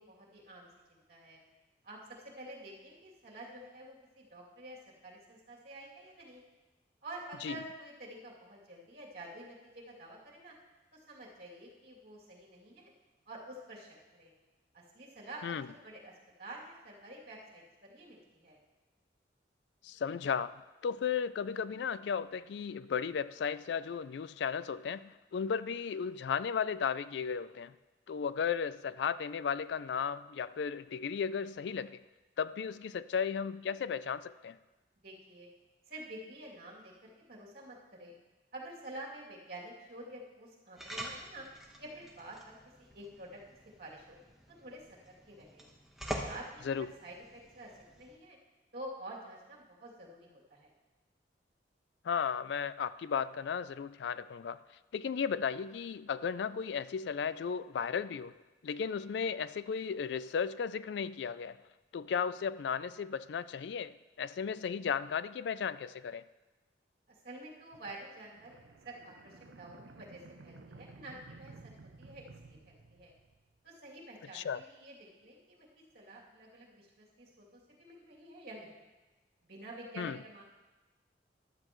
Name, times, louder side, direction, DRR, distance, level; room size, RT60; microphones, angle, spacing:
voice 1, 0.0-1.4 1.8-6.4 7.0-10.5 10.9-12.9 13.3-14.3 14.7-16.1 16.4-18.6 35.0-35.5 35.9-38.1 38.5-41.4 41.8-43.4 43.8-44.2 44.6-44.8 45.1-45.7 46.0-48.4 48.7-50.7 67.1-71.5 72.0-73.1 73.6-75.7 75.9-78.8 79.4-80.4, right 1 dB, 55° right, 2.7 m, -49 dB
voice 2, 19.8-20.5 20.8-27.7 28.1-32.0 32.4-34.6 46.6-46.9 52.0-54.6 54.9-58.3 58.6-61.6 61.9-66.2 74.3-74.6 80.0-80.2, left 6 dB, 70° left, 0.3 m, -35 dB
sound 1, 40.8-48.2, right 1 dB, ahead, 1.1 m, -46 dB
sound 2, 67.7-73.6, right 3 dB, 80° right, 0.6 m, -55 dB
14.0 x 11.5 x 3.1 m
head